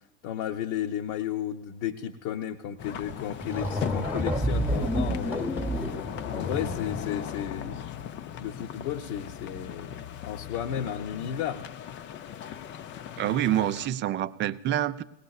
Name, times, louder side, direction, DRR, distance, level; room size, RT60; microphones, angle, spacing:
voice 1, 0.2-5.6 6.3-7.8 8.4-9.9 10.2-11.7, left 10 dB, 50° left, 1 dB, 0.7 m, -33 dB
sound 1, 2.8-13.9, left 9 dB, 30° left, 0.4 m, -38 dB
sound 2, 3.1-3.2 3.4-7.2, equal, 5° right, 1.1 m, -30 dB
voice 2, 13.2-15.0, right 12 dB, 30° right, 14 dB, 0.4 m, -27 dB
19.5 x 18.0 x 2.4 m, 0.86 s
hypercardioid pair, 90°, 40 cm